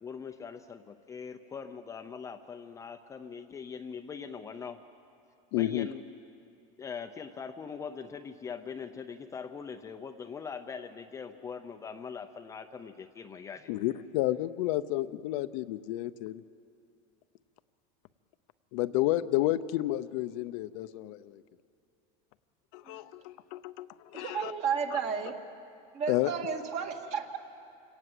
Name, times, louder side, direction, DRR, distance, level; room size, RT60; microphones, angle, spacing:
voice 1, 0.0-4.8 5.5-6.0 6.8-13.7, left 6 dB, 20° left, 6 dB, 0.6 m, -42 dB
voice 2, 5.5-5.9 13.7-16.4 18.7-21.4 22.7-24.5 24.9-25.0 26.1-26.3, left 15 dB, 65° left, 12 dB, 0.7 m, -31 dB
voice 3, 24.1-25.4 25.9-27.4, right 6 dB, 40° right, 4 dB, 2.0 m, -33 dB
29.0 x 18.0 x 7.7 m, 2.5 s
cardioid pair, 160°, 18 cm